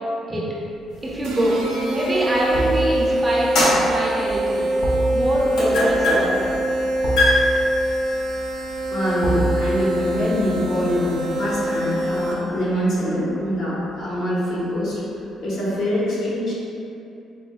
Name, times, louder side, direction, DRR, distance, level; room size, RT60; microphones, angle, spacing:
sound 1, 0.8-1.1 2.5-13.5 13.9-14.0, right 3 dB, 45° left, 0.6 m, -31 dB
sound 2, 1.0-2.9 3.3-11.8, left 1 dB, 85° left, 0.6 m, -25 dB
voice 1, 1.0-1.6 1.9-4.7 5.1-6.6, right 1 dB, 15° right, -6 dB, 0.4 m, -25 dB
sound 3, 1.2-12.6, right 1 dB, 85° right, 0.4 m, -24 dB
voice 2, 8.9-15.0 15.4-16.5, equal, 65° left, -8 dB, 1.0 m, -24 dB
4.2 x 2.1 x 2.3 m, 2.7 s
cardioid pair, 160°, 0 cm